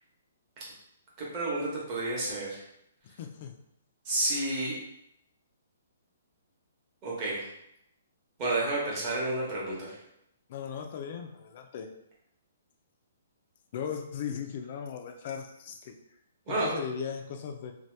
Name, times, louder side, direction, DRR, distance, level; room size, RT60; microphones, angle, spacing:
voice 1, 1.2-2.6 4.0-4.8 7.0-7.5 8.4-10.0 16.5-16.8, right 2 dB, 25° right, -6 dB, 0.9 m, -30 dB
voice 2, 3.2-3.5 10.5-11.9 13.7-16.0 16.5-17.7, left 7 dB, 40° left, 5 dB, 0.3 m, -37 dB
2.7 x 2.2 x 3.3 m, 0.78 s
hypercardioid pair, 170°, 0 cm